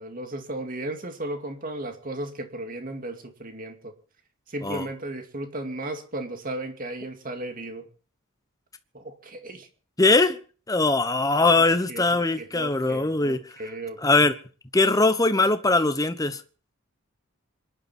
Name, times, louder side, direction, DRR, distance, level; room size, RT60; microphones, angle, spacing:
voice 1, 0.0-3.9 4.5-7.9 8.9-9.7 11.6-14.3, right 1 dB, 40° right, 2.3 m, -35 dB
voice 2, 10.0-10.4 10.7-13.4 14.0-14.3 14.7-16.4, left 2 dB, 15° left, 1.1 m, -21 dB
26.0 x 11.0 x 4.4 m
head